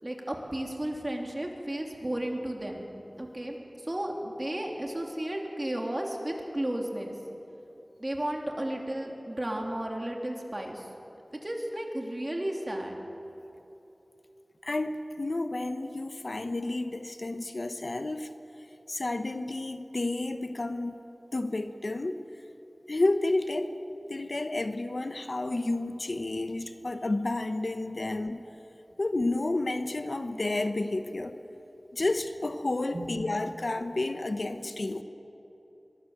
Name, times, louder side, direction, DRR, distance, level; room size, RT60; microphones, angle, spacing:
voice 1, 0.0-2.9 3.2-7.1 8.0-10.9 11.3-13.0 32.0-32.1 32.9-33.1, right 1 dB, 30° right, 1 dB, 3.4 m, -33 dB
voice 2, 14.6-18.3 18.9-21.0 21.3-22.2 22.9-23.8 24.1-28.4 29.0-31.4 31.9-35.0, left 2 dB, 65° left, 9 dB, 1.0 m, -31 dB
23.0 x 19.0 x 7.5 m, 3.0 s
wide cardioid pair, 50°, 0 cm